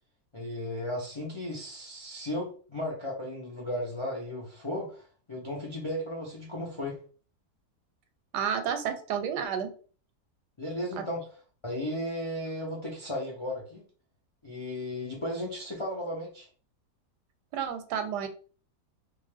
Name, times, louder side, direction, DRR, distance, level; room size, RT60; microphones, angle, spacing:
voice 1, 0.3-7.0 10.6-11.2 11.6-13.8 14.4-16.5, left 1 dB, 50° left, -2 dB, 0.3 m, -35 dB
voice 2, 8.3-9.7 11.0-11.1 17.5-18.3, right 8 dB, 85° right, 8 dB, 1.2 m, -31 dB
2.5 x 2.4 x 3.3 m, 0.41 s
omnidirectional pair, 1.7 m